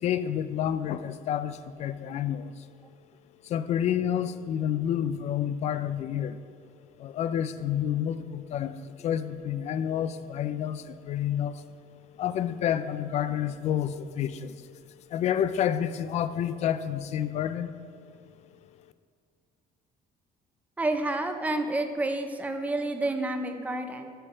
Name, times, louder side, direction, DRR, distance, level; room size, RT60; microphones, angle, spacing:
voice 1, 0.0-2.5 3.4-6.4 7.0-11.6 12.2-14.6 15.1-17.7, left 9 dB, 50° left, 13 dB, 0.4 m, -29 dB
voice 2, 20.8-24.1, right 2 dB, 10° right, 6 dB, 0.5 m, -29 dB
10.0 x 3.4 x 6.9 m, 2.2 s
cardioid pair, 160°, 15 cm